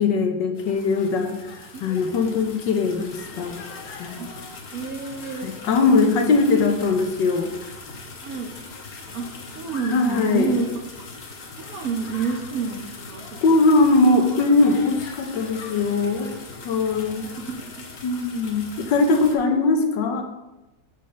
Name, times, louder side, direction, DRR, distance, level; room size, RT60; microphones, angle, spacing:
voice 1, 0.0-1.4 1.8-3.6 4.0-4.2 5.4-7.5 9.9-10.5 13.4-16.3 16.6-17.3 18.0-20.2, left 3 dB, 75° left, 4 dB, 1.5 m, -20 dB
sound 1, 0.5-19.4, left 4 dB, 55° left, 1.5 m, -40 dB
voice 2, 4.7-5.5 5.9-6.1 8.2-8.5 9.1-9.3 9.6-10.7 11.6-13.6 17.4-17.9, right 5 dB, 65° right, 3 dB, 0.9 m, -29 dB
5.9 x 5.1 x 6.8 m, 1.0 s
omnidirectional pair, 2.1 m